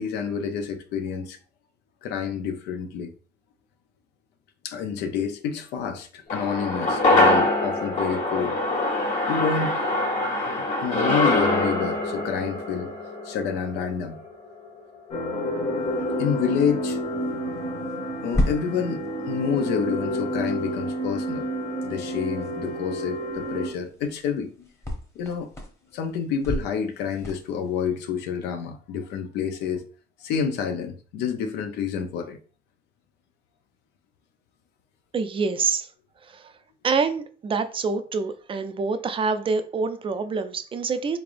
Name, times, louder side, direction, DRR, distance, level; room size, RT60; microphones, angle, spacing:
voice 1, 0.0-1.4 2.0-3.1 4.6-8.6 9.3-9.8 10.4-12.9 13.2-14.2 15.9-17.0 18.2-21.5 21.8-24.7 25.2-25.5 25.9-29.8 30.2-32.4, left 6 dB, 85° left, 0.6 m, -28 dB
sound 1, 6.3-14.8 15.1-15.2, left 2 dB, 55° left, 1.4 m, -24 dB
sound 2, 15.1-23.7, equal, 35° left, 1.2 m, -29 dB
sound 3, 15.8-27.9, left 1 dB, 15° left, 1.0 m, -36 dB
voice 2, 35.1-35.9 36.2-36.5 36.8-41.2, right 4 dB, 30° right, 0.4 m, -26 dB
3.6 x 3.3 x 2.5 m
cardioid pair, 110°, 17 cm